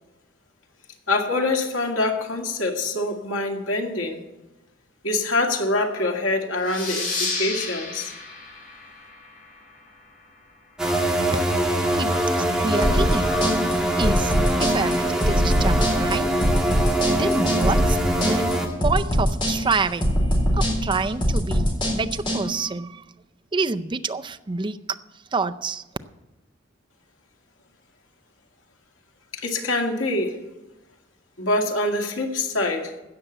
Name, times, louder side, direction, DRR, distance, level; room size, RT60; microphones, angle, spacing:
voice 1, 1.1-4.2 5.0-8.1 29.3-30.4 31.4-32.9, left 2 dB, 85° left, 2.1 m, -25 dB
sound 1, 6.6-9.9, left 3 dB, 45° left, 4.0 m, -32 dB
sound 2, 10.8-18.7, right 1 dB, 5° right, 1.5 m, -23 dB
voice 2, 11.9-13.3 14.0-16.3 17.1-18.5 18.8-20.2 20.6-23.0 23.5-24.8 25.3-25.8, right 4 dB, 25° right, 0.5 m, -27 dB
sound 3, 12.8-22.4, equal, 25° left, 3.9 m, -22 dB
16.0 x 6.6 x 7.9 m
head